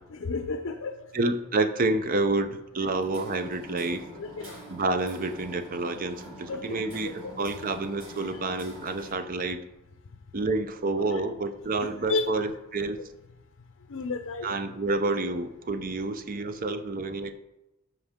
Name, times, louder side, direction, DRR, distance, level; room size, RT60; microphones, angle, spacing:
voice 1, 0.1-1.1 4.2-4.6 6.5-6.8 7.2-7.4 8.2-8.4 11.1-11.2 11.8-12.3 13.9-14.5, left 3 dB, 75° left, 6 dB, 0.6 m, -32 dB
voice 2, 1.1-4.1 4.7-9.6 10.3-13.0 14.4-17.3, right 2 dB, 40° right, 9 dB, 0.6 m, -29 dB
Hammer, 3.0-9.1, right 1 dB, 80° right, 3.5 m, -45 dB
13.0 x 4.7 x 3.6 m, 0.95 s
head